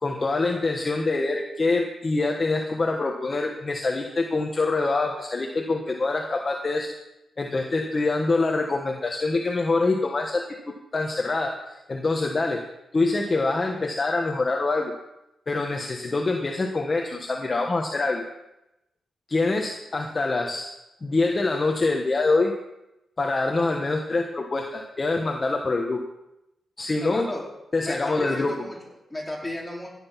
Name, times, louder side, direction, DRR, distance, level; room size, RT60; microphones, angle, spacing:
voice 1, 0.0-6.9 7.4-10.4 10.9-12.6 12.9-14.9 15.5-18.2 19.3-20.7 21.0-22.5 23.2-26.0 26.8-27.3 27.7-28.5, left 3 dB, 30° left, 2 dB, 1.4 m, -25 dB
voice 2, 27.0-27.4 27.8-29.9, left 1 dB, 10° left, -4 dB, 4.6 m, -34 dB
16.0 x 9.3 x 5.9 m, 0.90 s
wide cardioid pair, 120°, 0 cm